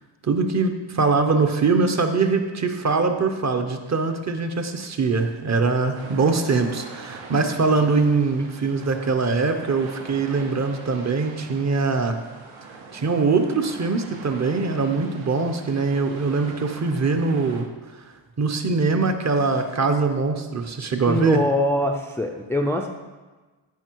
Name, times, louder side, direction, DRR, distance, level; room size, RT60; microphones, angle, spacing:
voice 1, 0.2-12.2 12.9-17.7 17.9-18.0 18.4-21.4, right 4 dB, 35° right, 6 dB, 0.9 m, -22 dB
sound 1, 5.9-17.6, right 4 dB, 75° right, 1.9 m, -43 dB
voice 2, 21.1-22.9, left 1 dB, 5° left, 2 dB, 0.5 m, -23 dB
15.0 x 5.6 x 4.6 m, 1.3 s
wide cardioid pair, 170°, 47 cm